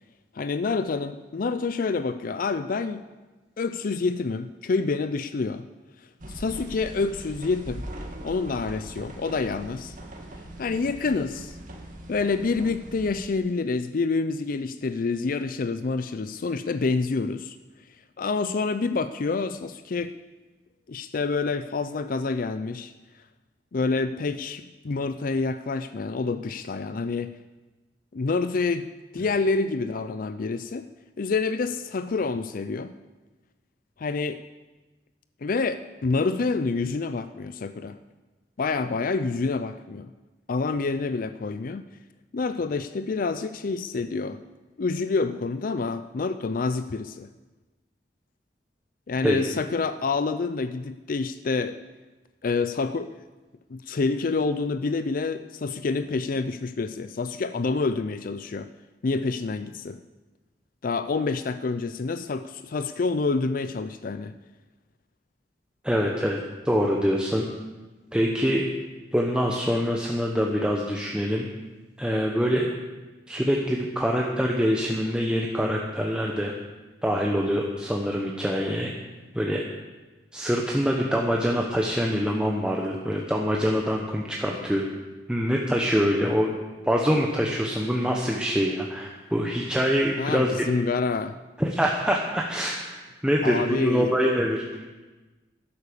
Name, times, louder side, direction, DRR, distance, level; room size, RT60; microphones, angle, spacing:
voice 1, 0.3-3.0 3.6-5.6 6.3-7.8 8.2-10.0 10.6-11.6 12.1-17.6 18.2-20.1 20.9-22.9 23.7-27.3 28.1-28.9 29.1-30.9 31.2-32.9 34.0-34.4 35.4-38.0 38.6-40.1 40.5-41.9 42.3-44.4 44.8-47.3 49.1-51.8 52.4-53.2 53.7-58.7 59.0-60.0 60.8-64.3 90.2-91.4 93.4-94.2, left 4 dB, 50° left, 12 dB, 0.5 m, -27 dB
sound 1, 6.2-13.2, right 1 dB, 50° right, 2.1 m, -41 dB
voice 2, 65.8-66.4 66.6-67.4 68.1-68.6 69.1-71.4 72.0-72.6 73.3-76.5 77.0-78.9 79.3-79.6 80.3-84.8 85.3-86.5 86.8-90.7 91.6-94.6, equal, 5° right, -1 dB, 1.1 m, -24 dB
12.0 x 11.0 x 6.9 m, 1.2 s
head